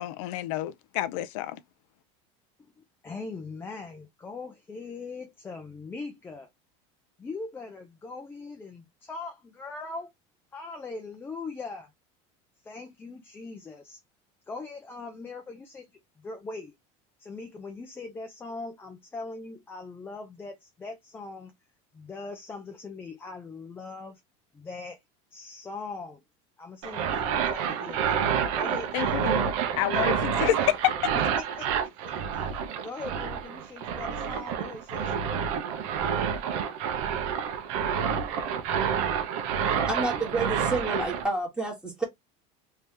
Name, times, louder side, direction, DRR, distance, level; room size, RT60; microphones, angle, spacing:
voice 1, 0.0-1.6 28.9-30.9, left 13 dB, 75° left, 0.4 m, -28 dB
voice 2, 2.6-6.5 7.2-10.1 10.5-11.9 12.6-14.0 14.5-16.8 17.2-21.5 21.9-24.2 24.5-25.0 25.3-26.2 26.6-28.2 28.5-29.3 31.6-35.1, left 3 dB, 15° left, 0.5 m, -41 dB
sound 1, 26.8-41.2, right 7 dB, 65° right, 0.8 m, -28 dB
voice 3, 39.8-42.0, right 2 dB, 5° right, 1.4 m, -29 dB
3.3 x 2.8 x 3.3 m
cardioid pair, 155°, 16 cm